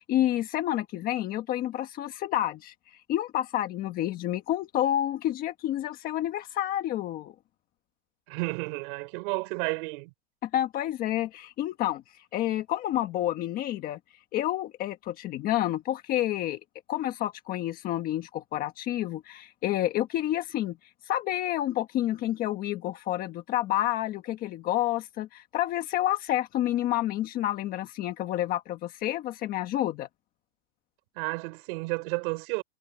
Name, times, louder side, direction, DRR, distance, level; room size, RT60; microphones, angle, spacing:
voice 1, 0.0-2.7 3.1-7.3 10.4-12.0 12.3-14.0 14.3-16.6 16.9-20.8 21.1-30.1, left 13 dB, 25° left, 1.4 m, -29 dB
voice 2, 8.3-10.1 31.1-32.6, right 28 dB, 45° right, 4.3 m, -32 dB
supercardioid pair, 170°, 36 cm